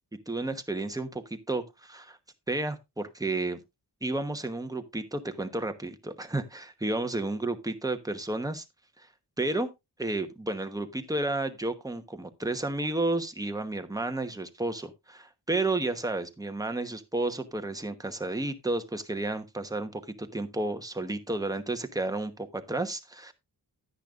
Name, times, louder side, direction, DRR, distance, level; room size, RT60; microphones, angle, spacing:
voice 1, 0.3-2.2 2.5-3.6 4.0-8.6 9.0-9.1 9.4-9.7 10.0-23.3, right 2 dB, 10° right, 1.1 m, -32 dB
10.5 x 10.0 x 2.5 m
wide cardioid pair, 95°, 41 cm